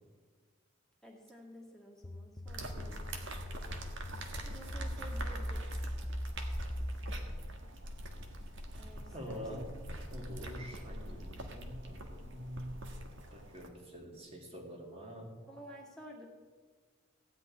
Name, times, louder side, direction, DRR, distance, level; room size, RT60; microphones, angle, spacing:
voice 1, 1.0-3.0 4.4-6.0 8.7-9.7 15.5-16.3, equal, 5° left, -2 dB, 2.1 m, -52 dB
sound 1, 2.0-7.3, equal, 20° left, 0.5 m, -40 dB
sound 2, 2.5-13.7, right 1 dB, 60° right, 1.6 m, -43 dB
voice 2, 9.1-12.9 13.3-15.4, equal, 30° right, 1 dB, 2.1 m, -46 dB
15.5 x 5.3 x 9.7 m, 1.5 s
head